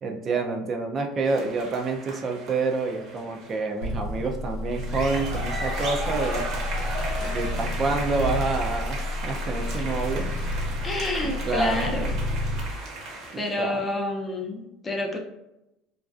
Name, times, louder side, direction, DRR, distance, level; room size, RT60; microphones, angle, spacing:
voice 1, 0.0-6.5 7.2-10.4 11.2-11.9 13.3-13.9, right 3 dB, 40° right, 4 dB, 0.3 m, -28 dB
sound 1, 1.3-3.7 4.7-13.6, right 2 dB, 55° right, 0.8 m, -36 dB
sound 2, 3.8-12.7, left 1 dB, 85° left, 0.6 m, -30 dB
voice 2, 10.8-12.2 13.4-15.2, left 2 dB, 25° left, 2 dB, 0.5 m, -29 dB
2.4 x 2.2 x 2.4 m, 0.89 s
supercardioid pair, 95°, 0 cm